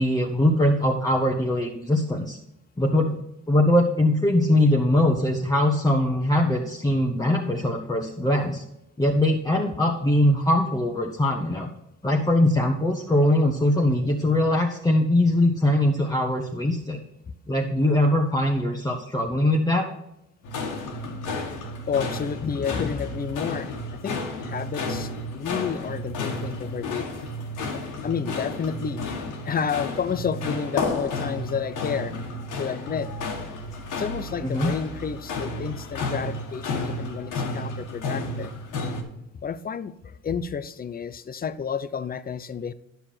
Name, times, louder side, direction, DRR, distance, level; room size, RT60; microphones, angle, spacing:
voice 1, 0.0-2.4 2.8-3.2 3.5-8.6 9.0-11.7 12.0-17.0 17.5-19.9 34.4-34.7, left 1 dB, 10° left, -1 dB, 1.1 m, -21 dB
sound 1, 20.4-39.0, left 2 dB, 85° left, 1.7 m, -32 dB
voice 2, 21.9-27.1 27.7-29.0 29.4-32.2 32.6-33.1 34.0-38.5 39.4-42.7, left 6 dB, 30° left, 14 dB, 0.6 m, -30 dB
9.9 x 6.9 x 4.4 m, 0.84 s
cardioid pair, 90°, 30 cm